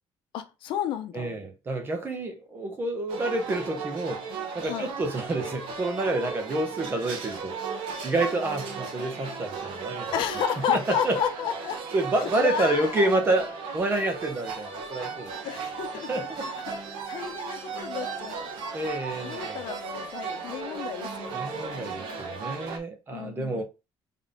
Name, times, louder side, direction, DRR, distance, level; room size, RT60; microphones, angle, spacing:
voice 1, 0.3-1.4 4.7-4.9 10.1-11.8 12.2-13.1 15.4-18.5 19.2-21.4 21.7-22.1 23.1-23.6, left 9 dB, 75° left, 0.7 m, -32 dB
voice 2, 1.1-4.2 4.5-10.1 10.7-11.2 11.9-15.3 16.1-16.5 18.7-19.6 21.3-23.6, right 2 dB, 25° right, 1.1 m, -28 dB
sound 1, 3.1-22.8, right 5 dB, 85° right, 1.3 m, -36 dB
3.9 x 3.6 x 3.7 m
cardioid pair, 170°, 9 cm